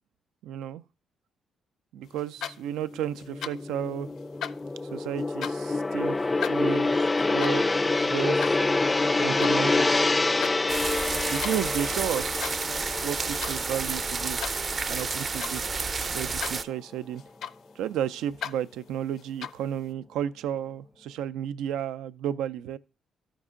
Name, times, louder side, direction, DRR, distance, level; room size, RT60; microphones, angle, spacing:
voice 1, 0.4-0.8 1.9-4.1 4.9-7.0 7.3-7.6 8.0-8.6 9.2-10.1 11.3-12.7 13.0-14.4 14.9-17.2 17.8-22.8, right 10 dB, 90° right, 0.4 m, -33 dB
sound 1, 2.2-2.9 3.2-3.8 4.1-5.7 6.2-9.6 10.0-10.6 10.9-11.6 12.2-12.8 13.0-13.6 13.9-15.7 16.2-16.7 17.0-17.8 18.2-18.6 19.2-19.7, left 8 dB, 75° left, 0.5 m, -38 dB
Gong, 2.8-15.2 15.6-15.8, left 3 dB, 20° left, 0.4 m, -27 dB
sound 2, 10.7-16.6, right 4 dB, 35° right, 0.6 m, -30 dB
12.5 x 5.3 x 3.7 m
cardioid pair, 90°, 0 cm